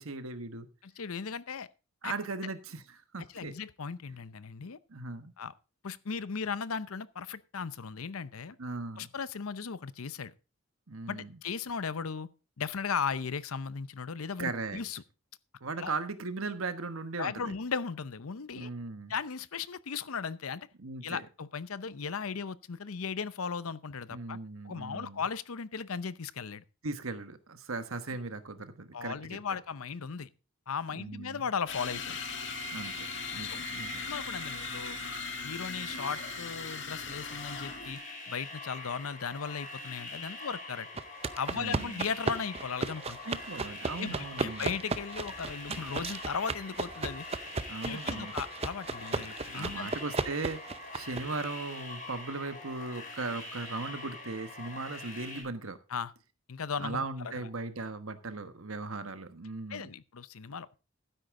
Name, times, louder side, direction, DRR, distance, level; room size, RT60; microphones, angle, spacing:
voice 1, 0.0-0.7 2.0-3.5 4.9-5.3 8.6-9.1 10.9-11.4 14.4-14.8 15.6-17.5 18.5-19.1 20.8-21.2 24.1-25.2 26.8-29.4 30.9-31.5 32.7-32.9 33.3-34.1 41.5-42.1 43.2-44.8 47.7-48.3 49.2-55.8 56.8-59.9, right 3 dB, 80° right, 1.3 m, -38 dB
voice 2, 0.8-1.7 2.0-2.1 3.3-4.8 5.4-5.5 5.8-8.6 9.0-10.3 11.1-12.3 12.6-15.0 15.8-15.9 17.2-18.7 19.1-20.7 21.0-24.4 24.6-26.6 28.9-30.3 30.7-32.2 33.4-33.6 34.0-35.0 35.4-38.0 38.3-40.9 41.4-43.3 44.0-47.2 47.8-49.9 55.9-56.1 56.5-57.1 57.3-57.5 59.7-60.8, left 6 dB, 85° left, 0.7 m, -37 dB
sound 1, 31.7-37.9, left 3 dB, 55° left, 2.1 m, -38 dB
sound 2, 37.1-55.4, left 2 dB, 35° left, 4.8 m, -44 dB
sound 3, 41.0-51.5, right 3 dB, 30° right, 0.6 m, -36 dB
12.5 x 10.0 x 3.7 m
head